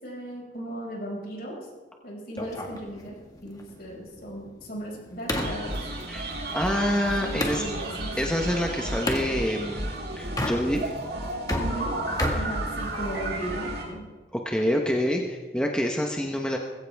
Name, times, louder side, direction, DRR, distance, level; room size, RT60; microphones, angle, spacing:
voice 1, 0.0-1.6 2.0-3.2 3.4-5.9 7.2-8.2 11.6-11.9 12.3-14.0, equal, 50° left, -2 dB, 5.7 m, -36 dB
sound 1, 2.4-7.7 9.1-9.3 10.2-11.0 11.3-13.3, left 1 dB, 20° left, 1.8 m, -32 dB
sound 2, 5.3-13.8, right 2 dB, 60° right, 5.4 m, -33 dB
voice 2, 6.1-7.6 8.2-9.9 10.1-10.8 14.3-16.6, equal, 5° left, 1 dB, 1.0 m, -27 dB
20.5 x 16.0 x 3.5 m, 1.4 s
head